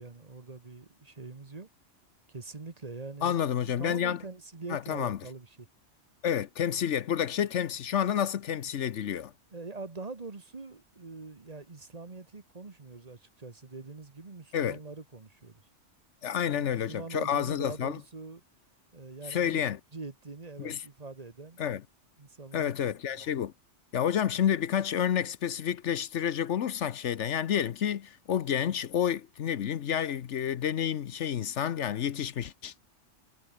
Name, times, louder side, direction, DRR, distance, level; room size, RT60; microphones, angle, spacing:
voice 1, 0.0-1.7 2.3-3.4 3.8-5.7 9.5-15.6 16.4-18.4 18.9-19.6 19.9-21.6 22.2-23.2, right 3 dB, 30° right, 1.5 m, -44 dB
voice 2, 3.2-4.2 4.7-5.2 6.2-9.3 14.5-14.8 16.2-18.0 19.3-19.8 20.6-20.8 21.6-21.8 22.5-23.5 23.9-32.7, left 9 dB, 70° left, 1.1 m, -29 dB
omnidirectional pair, 1.3 m